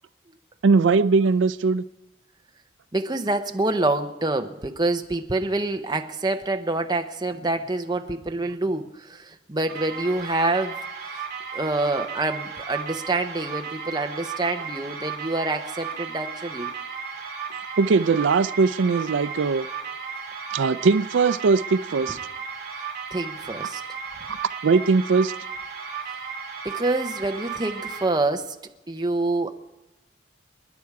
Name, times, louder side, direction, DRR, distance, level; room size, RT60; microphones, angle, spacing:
voice 1, 0.6-1.8 11.8-11.9 17.8-19.7 20.5-22.2 24.3-24.4 24.6-25.3, right 4 dB, 75° right, 0.4 m, -20 dB
voice 2, 2.9-10.8 11.5-16.7 23.1-23.8 26.1-26.2 26.6-28.5 28.9-29.5, right 2 dB, 20° right, 0.8 m, -26 dB
sound 1, 9.7-28.1, right 6 dB, 50° right, 3.2 m, -35 dB
28.0 x 10.5 x 4.8 m
head